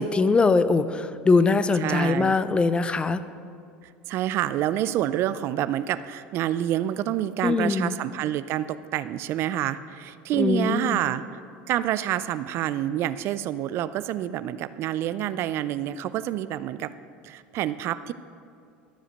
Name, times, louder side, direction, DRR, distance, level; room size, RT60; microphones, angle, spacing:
voice 1, 0.0-3.2 7.4-7.9 10.4-11.0, left 4 dB, 20° left, 13 dB, 0.5 m, -22 dB
voice 2, 1.8-2.4 4.1-11.2 11.7-16.9 17.2-18.1, right 12 dB, 55° right, 14 dB, 0.4 m, -27 dB
12.5 x 5.0 x 6.5 m, 2.5 s
hypercardioid pair, 85°, 5 cm